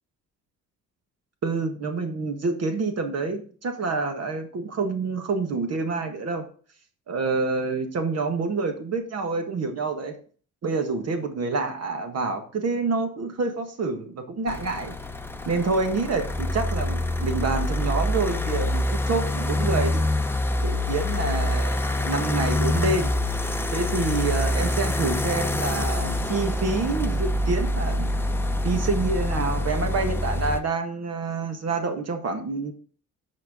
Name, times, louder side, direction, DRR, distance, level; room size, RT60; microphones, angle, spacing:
voice 1, 1.4-6.4 7.1-10.2 10.6-14.9 15.4-20.0 20.6-23.2 23.7-28.1 28.6-32.7, right 3 dB, 55° right, 6 dB, 1.6 m, -27 dB
sound 1, 14.5-30.6, left 1 dB, 10° left, 0.7 m, -26 dB
12.5 x 4.6 x 3.7 m, 0.42 s
cardioid pair, 90°, 30 cm